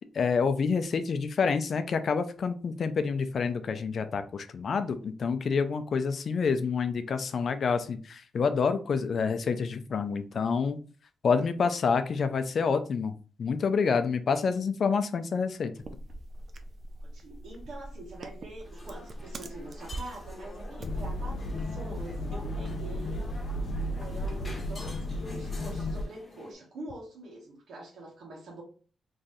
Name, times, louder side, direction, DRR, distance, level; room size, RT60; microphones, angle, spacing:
voice 1, 0.1-10.8 11.2-13.1 13.4-15.7, left 5 dB, 45° left, 9 dB, 0.4 m, -28 dB
sound 1, 15.8-21.1, right 1 dB, 40° right, 0.4 m, -43 dB
voice 2, 17.0-23.4 24.0-28.6, right 2 dB, 85° right, -5 dB, 1.4 m, -45 dB
sound 2, 18.6-26.5, left 2 dB, 20° left, 1.2 m, -48 dB
sound 3, 20.8-26.0, left 1 dB, 85° left, 0.7 m, -34 dB
3.8 x 3.1 x 2.7 m, 0.39 s
wide cardioid pair, 165°, 0 cm